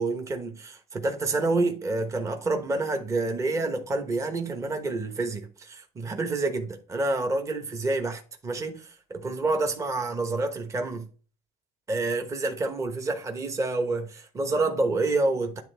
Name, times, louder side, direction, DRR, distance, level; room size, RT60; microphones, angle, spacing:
voice 1, 0.0-11.1 11.9-15.6, right 2 dB, 20° right, 1.1 m, -28 dB
10.5 x 3.6 x 3.3 m
cardioid pair, 130°, 14 cm